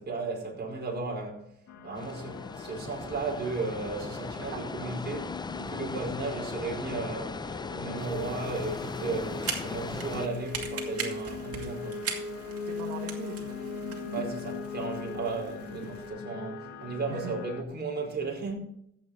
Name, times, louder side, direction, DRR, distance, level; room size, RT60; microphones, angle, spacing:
voice 1, 0.0-1.5 1.8-12.0 14.1-18.6, right 3 dB, 35° right, 4.9 m, -35 dB
sound 1, 1.7-17.6, left 5 dB, 65° left, 1.5 m, -40 dB
sound 2, 1.9-10.3, left 4 dB, 15° left, 0.4 m, -38 dB
voice 2, 4.4-5.0 12.7-14.0 17.1-17.3, right 7 dB, 85° right, 1.8 m, -42 dB
sound 3, 8.0-16.1, right 5 dB, 50° right, 2.5 m, -41 dB
13.5 x 8.7 x 4.2 m
cardioid pair, 90°, 30 cm